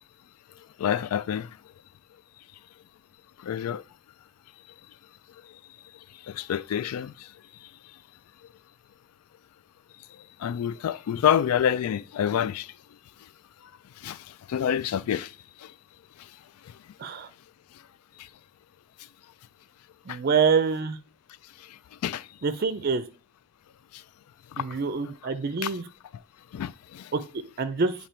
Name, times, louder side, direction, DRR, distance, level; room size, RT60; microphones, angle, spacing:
voice 1, 0.8-1.5 3.4-3.8 6.2-7.3 7.6-7.7 10.4-12.7 14.0-15.7 16.2-16.3 18.2-18.3 20.1-20.2 21.6-22.3 23.9-24.0 24.5-24.8 25.6-25.7 26.5-27.1, left 9 dB, 90° left, 0.3 m, -28 dB
voice 2, 20.1-21.0 22.4-23.0 24.6-25.8 27.1-27.9, right 5 dB, 45° right, 0.5 m, -26 dB
8.3 x 2.9 x 4.4 m
head